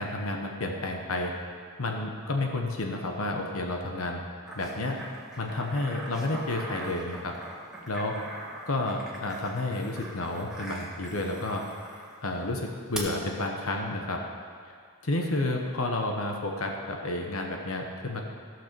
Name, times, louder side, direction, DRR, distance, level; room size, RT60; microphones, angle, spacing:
voice 1, 0.0-1.3 1.8-4.2 4.5-5.0 5.4-7.3 7.9-8.2 8.7-11.6 12.2-14.2 15.0-18.2, left 2 dB, 65° left, 2 dB, 1.1 m, -31 dB
sound 1, 4.5-12.1 12.9-13.0, right 1 dB, 5° right, 1.6 m, -42 dB
15.0 x 6.2 x 6.9 m, 2.1 s
head